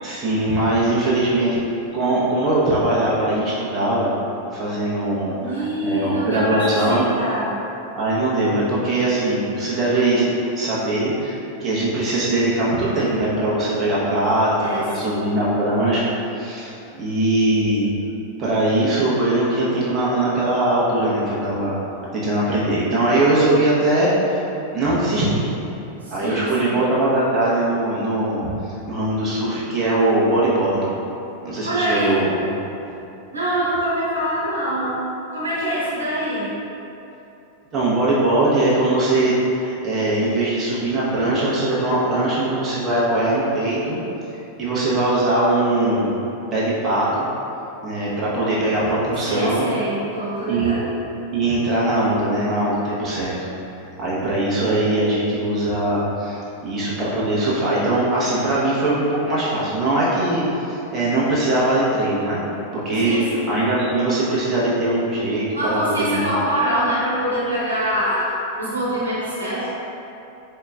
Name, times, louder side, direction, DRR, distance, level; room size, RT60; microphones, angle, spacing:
voice 1, 0.0-1.6 1.9-4.1 4.5-7.0 7.9-10.3 10.5-16.7 17.0-17.9 18.4-21.8 22.1-24.4 24.7-25.5 26.1-30.9 31.4-32.5 37.7-39.3 39.6-44.0 44.6-46.1 46.5-47.3 47.8-49.7 50.5-50.8 51.3-53.4 54.0-62.4 62.7-66.2, right 1 dB, 25° right, -8 dB, 1.0 m, -21 dB
voice 2, 5.4-7.6 14.6-15.4 26.1-26.8 31.6-32.2 33.3-35.0 35.3-36.5 49.3-50.9 63.0-63.5 65.5-68.2 68.6-69.7, right 1 dB, 80° right, -8 dB, 1.1 m, -24 dB
4.2 x 3.9 x 2.3 m, 2.9 s
figure-of-eight pair, 90°, 0 cm